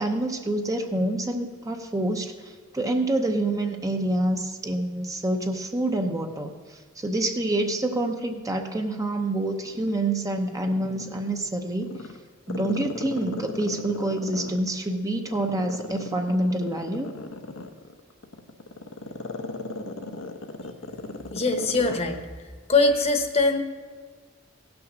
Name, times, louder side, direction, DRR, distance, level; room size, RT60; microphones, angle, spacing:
voice 1, 0.0-12.0 12.5-17.1, right 1 dB, 15° right, 4 dB, 0.7 m, -27 dB
Growling, 9.7-11.4 11.8-14.8 15.3-22.1 22.4-22.5, left 2 dB, 75° left, 0.9 m, -36 dB
voice 2, 21.3-22.2 22.7-23.6, left 3 dB, 30° left, 6 dB, 1.0 m, -22 dB
16.5 x 6.1 x 6.1 m, 1.5 s
head